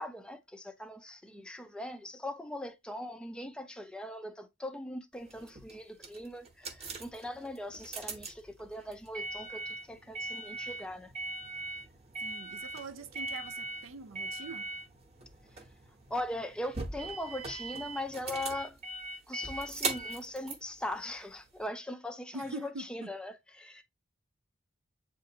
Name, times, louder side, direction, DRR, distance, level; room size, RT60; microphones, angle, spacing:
voice 1, 0.0-11.1 16.1-18.8 19.3-23.8, left 1 dB, 5° left, 0.4 m, -40 dB
sound 1, 5.2-21.6, right 3 dB, 35° right, 0.8 m, -41 dB
voice 2, 12.2-14.7 22.3-23.1, right 3 dB, 90° right, 0.6 m, -44 dB
7.4 x 2.6 x 2.7 m
head